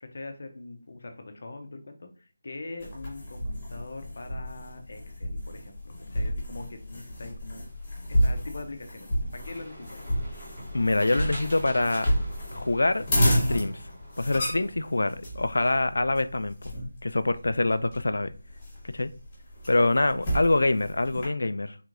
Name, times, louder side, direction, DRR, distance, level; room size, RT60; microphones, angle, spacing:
voice 1, 0.0-7.8 8.1-10.0, left 2 dB, 45° left, 6 dB, 0.6 m, -42 dB
sound 1, 2.8-21.3, equal, 15° left, 1.2 m, -31 dB
sound 2, 9.4-14.4, equal, 25° right, 1.0 m, -44 dB
voice 2, 10.7-12.1 12.5-13.8 14.2-16.5 17.0-18.3 18.8-19.1 19.7-21.8, left 2 dB, 90° left, 12 dB, 0.3 m, -25 dB
3.5 x 3.0 x 2.5 m, 0.37 s
figure-of-eight pair, 180°, 0 cm